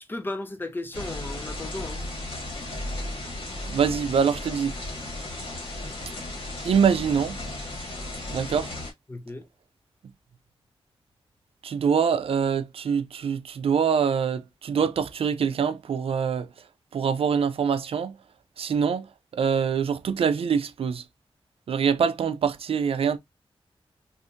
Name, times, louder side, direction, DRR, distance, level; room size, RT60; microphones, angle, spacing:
voice 1, 0.1-2.0 9.1-9.5, left 2 dB, 20° left, 0.5 m, -35 dB
sound 1, 0.9-8.9, left 1 dB, 60° left, 1.7 m, -35 dB
voice 2, 3.7-4.8 6.6-7.4 8.3-8.7 11.6-16.5 16.9-18.1 18.6-19.1 19.3-21.0 21.7-23.2, right 7 dB, 75° right, 0.4 m, -24 dB
3.5 x 2.6 x 2.4 m
wide cardioid pair, 160°, 10 cm